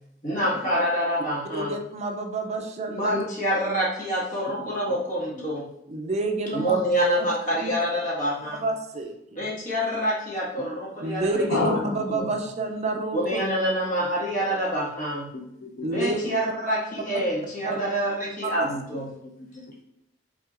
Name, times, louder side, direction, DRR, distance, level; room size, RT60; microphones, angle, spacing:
voice 1, 0.2-1.7 2.9-5.7 6.5-8.6 9.4-11.4 12.1-12.3 13.1-15.3 15.9-19.1, equal, 45° left, -5 dB, 1.6 m, -26 dB
voice 2, 1.5-3.2 5.9-6.8 7.2-7.3 7.6-7.7 8.5-9.4 11.0-13.4 15.8-16.2 17.6-17.8 18.4-18.7, right 2 dB, 35° right, 4 dB, 0.5 m, -29 dB
voice 3, 4.5-5.0 5.3-5.5 11.3-12.1 15.3-16.4 18.7-19.6, left 2 dB, 75° left, 2 dB, 0.7 m, -32 dB
5.9 x 3.6 x 2.5 m, 0.80 s
head